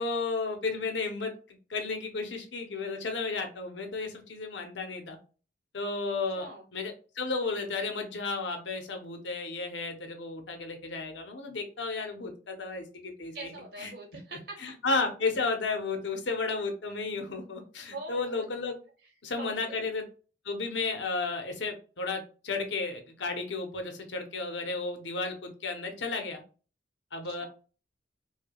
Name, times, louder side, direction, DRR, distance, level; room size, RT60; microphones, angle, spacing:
voice 1, 0.0-5.2 5.7-13.5 13.8-13.9 14.6-18.7 19.2-20.0 20.4-26.4 27.1-27.4, left 3 dB, 80° left, 4 dB, 0.8 m, -33 dB
voice 2, 6.3-6.7 13.3-14.6 17.9-18.4 19.0-19.1 19.4-19.9 27.2-27.5, right 2 dB, 60° right, -1 dB, 1.4 m, -43 dB
4.8 x 2.3 x 2.3 m, 0.37 s
head